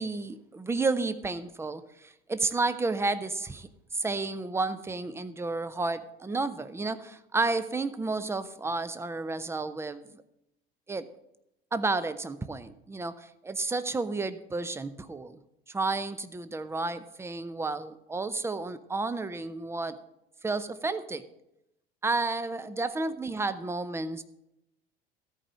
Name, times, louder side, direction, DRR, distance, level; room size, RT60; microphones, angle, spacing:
voice 1, 0.0-10.2 10.9-11.1 11.7-15.4 15.7-20.0 20.4-21.3 22.0-24.2, right 3 dB, 10° right, 14 dB, 0.6 m, -31 dB
13.5 x 4.9 x 7.3 m, 0.84 s
figure-of-eight pair, 70°, 31 cm